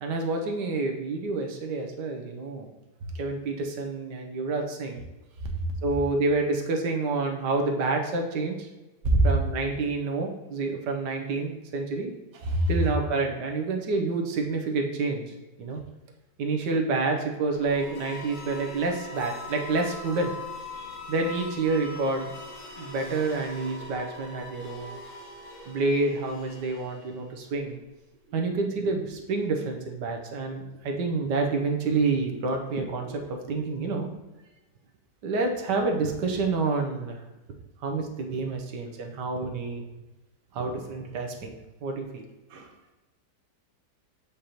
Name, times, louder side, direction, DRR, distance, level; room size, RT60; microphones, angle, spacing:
voice 1, 0.0-2.7 3.1-5.0 5.8-8.7 9.2-12.1 12.7-15.2 15.6-15.8 16.4-20.3 21.1-22.3 22.8-25.0 25.7-27.8 28.3-34.1 35.2-37.2 37.8-39.8 40.5-41.5 41.8-42.2, right 3 dB, 80° right, 2 dB, 1.4 m, -28 dB
voice 2, 5.4-5.7 9.0-9.3 12.3-12.9 20.7-21.1 42.5-42.9, right 1 dB, 50° right, 2 dB, 1.1 m, -26 dB
sound 1, 17.4-27.4, left 2 dB, 65° left, 1.3 m, -42 dB
6.6 x 5.2 x 2.9 m, 1.1 s
omnidirectional pair, 1.8 m